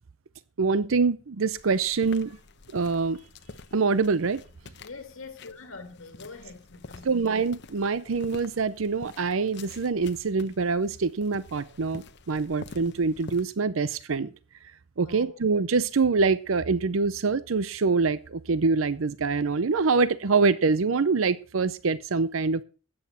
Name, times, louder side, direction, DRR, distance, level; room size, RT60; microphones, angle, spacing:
voice 1, 0.6-2.3 2.7-3.2 3.7-4.4 7.0-14.3 15.0-22.6, right 4 dB, 80° right, 16 dB, 0.6 m, -25 dB
sound 1, 1.5-13.4, left 3 dB, 55° left, 1.0 m, -48 dB
voice 2, 4.8-7.1 15.0-15.4, left 4 dB, 80° left, 6 dB, 1.9 m, -44 dB
13.0 x 8.9 x 5.6 m, 0.37 s
head